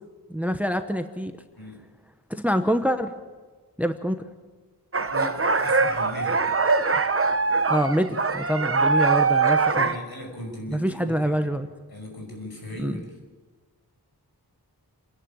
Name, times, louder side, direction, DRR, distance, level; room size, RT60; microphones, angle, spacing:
voice 1, 0.3-1.4 2.3-3.1 3.8-4.2 7.7-9.9 10.7-11.7 12.8-13.0, equal, 5° right, 9 dB, 0.9 m, -25 dB
sound 1, 4.9-10.0, right 4 dB, 35° right, 0.8 m, -22 dB
voice 2, 5.1-6.6 9.8-11.6 11.9-13.1, left 1 dB, 65° left, 1 dB, 5.9 m, -38 dB
27.5 x 11.0 x 8.7 m, 1.4 s
wide cardioid pair, 65°, 40 cm